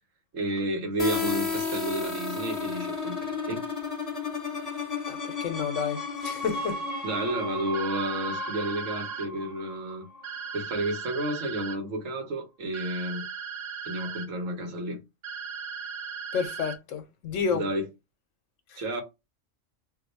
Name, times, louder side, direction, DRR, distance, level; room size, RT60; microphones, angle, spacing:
voice 1, 0.3-3.6 7.0-10.1 10.5-13.3 13.8-15.0 17.5-17.8 18.8-19.0, right 1 dB, 80° right, 1.3 m, -31 dB
sound 1, 1.0-10.6, left 4 dB, 15° left, 1.3 m, -33 dB
voice 2, 5.1-6.8 16.3-17.6 18.7-18.8, left 6 dB, 75° left, 1.0 m, -30 dB
sound 2, 7.7-9.3 10.2-11.8 12.7-14.3 15.2-16.8, right 6 dB, 65° right, 0.7 m, -37 dB
2.7 x 2.3 x 4.0 m
omnidirectional pair, 1.3 m